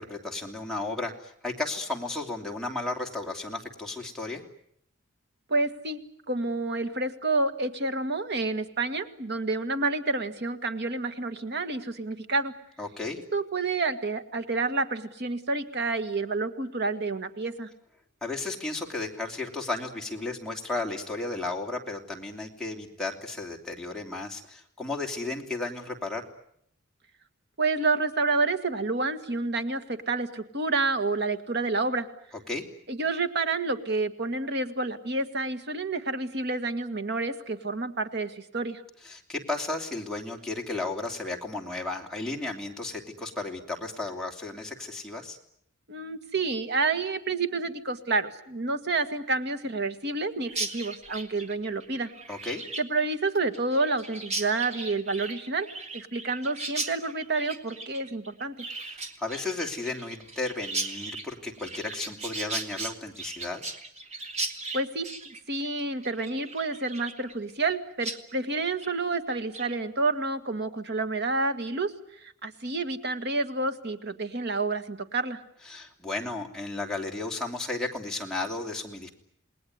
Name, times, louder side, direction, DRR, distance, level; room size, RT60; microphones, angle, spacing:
voice 1, 0.0-4.4 12.8-13.2 18.2-26.2 32.5-32.6 39.0-45.4 52.3-52.6 58.8-63.6 75.7-79.1, left 2 dB, 5° left, -1 dB, 3.0 m, -34 dB
voice 2, 5.5-6.0 6.3-12.5 13.3-17.7 27.6-32.1 32.9-38.8 45.9-52.1 52.8-55.7 55.9-58.5 64.7-75.4, right 3 dB, 50° right, 10 dB, 1.8 m, -29 dB
Chirp tweet, 50.5-67.7 68.0-68.2 68.5-68.9 69.3-69.8, right 2 dB, 30° right, 2.0 m, -37 dB
28.5 x 19.5 x 9.5 m, 0.72 s
head